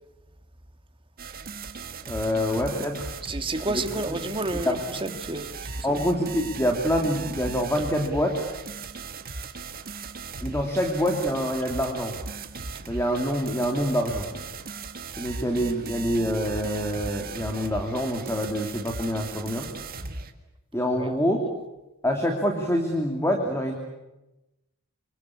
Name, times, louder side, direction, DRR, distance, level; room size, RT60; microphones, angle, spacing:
sound 1, 1.2-20.3, right 4 dB, 45° right, 1.9 m, -38 dB
voice 1, 2.1-3.1 3.7-3.8 4.1-4.2 4.5-4.8 5.8-8.4 10.4-12.1 12.9-14.3 15.2-19.7 20.7-21.5 22.0-23.7, equal, 10° left, 2.8 m, -26 dB
voice 2, 3.2-6.0 20.9-21.1, right 2 dB, 25° right, 1.7 m, -31 dB
26.0 x 25.5 x 8.6 m
head